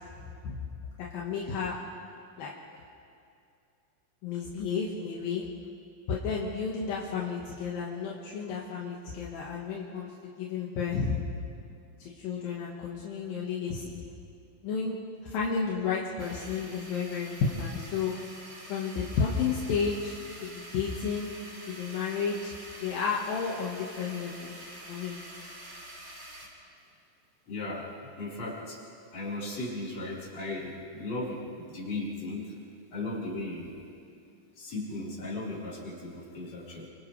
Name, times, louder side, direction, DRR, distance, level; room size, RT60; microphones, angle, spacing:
voice 1, 1.1-1.8 2.4-2.5 4.2-5.5 6.1-11.2 12.0-14.0 14.6-18.1 18.7-20.1 20.4-21.3 21.6-22.5 22.8-24.6 24.9-25.2, left 5 dB, 75° left, -4 dB, 3.3 m, -32 dB
sound 1, 16.2-26.5, right 1 dB, 50° right, 6.3 m, -46 dB
voice 2, 27.5-28.8 29.1-32.5 32.9-33.8 34.6-36.9, left 2 dB, 45° left, -7 dB, 5.5 m, -36 dB
29.5 x 27.0 x 3.3 m, 2.6 s
omnidirectional pair, 4.1 m